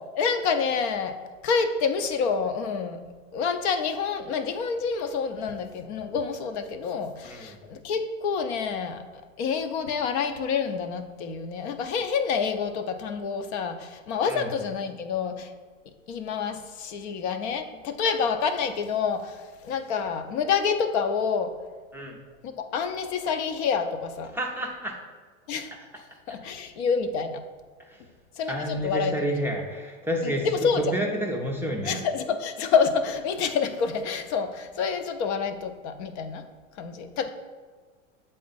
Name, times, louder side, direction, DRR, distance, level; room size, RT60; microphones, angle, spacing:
voice 1, 0.1-1.2 1.4-3.0 3.3-9.0 9.4-15.5 16.1-21.5 22.4-24.3 25.5-25.7 26.3-27.4 28.4-29.1 30.2-31.0 31.8-36.4 36.8-37.3, left 6 dB, 55° left, 8 dB, 0.7 m, -28 dB
voice 2, 7.2-7.6 14.3-14.5 21.9-22.2 24.3-24.9 27.8-28.0 28.5-32.0, right 1 dB, 5° right, -2 dB, 0.5 m, -30 dB
7.5 x 3.8 x 4.0 m, 1.5 s
hypercardioid pair, 110°, 39 cm